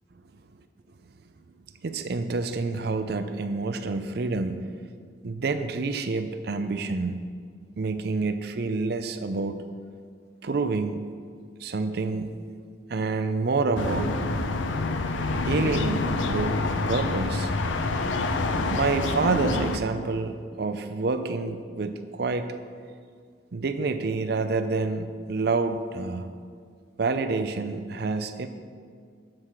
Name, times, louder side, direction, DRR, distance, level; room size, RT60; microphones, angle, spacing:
voice 1, 1.8-4.6 5.2-7.2 7.8-9.6 10.4-11.1 11.6-12.3 12.9-14.2 15.4-17.5 18.7-22.5 23.5-26.3 27.0-28.5, right 3 dB, 60° right, 9 dB, 0.5 m, -28 dB
sound 1, 13.8-19.8, left 3 dB, 85° left, 0.6 m, -27 dB
7.7 x 6.5 x 6.0 m, 2.1 s
head